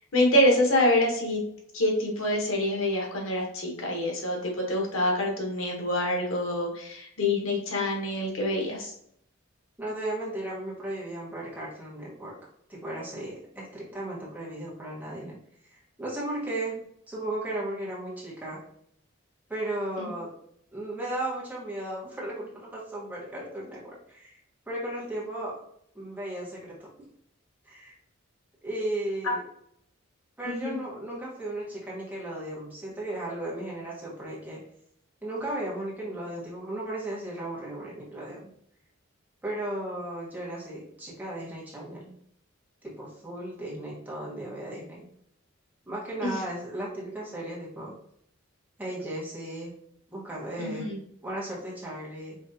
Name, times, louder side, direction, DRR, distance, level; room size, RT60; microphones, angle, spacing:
voice 1, 0.1-1.4 1.7-8.9 20.0-20.1 30.4-30.8 46.2-46.3 50.6-51.0, left 1 dB, 90° left, 0 dB, 1.2 m, -26 dB
voice 2, 9.8-12.4 12.7-15.4 15.6-18.6 19.5-20.3 20.7-24.3 24.7-25.6 25.9-27.1 27.6-27.9 28.6-29.4 30.4-34.6 35.2-38.5 39.4-42.1 42.8-45.1 45.9-48.0 48.8-49.7 50.1-50.9 51.2-52.4, right 1 dB, 10° right, -6 dB, 1.4 m, -35 dB
5.0 x 3.2 x 2.8 m, 0.68 s
head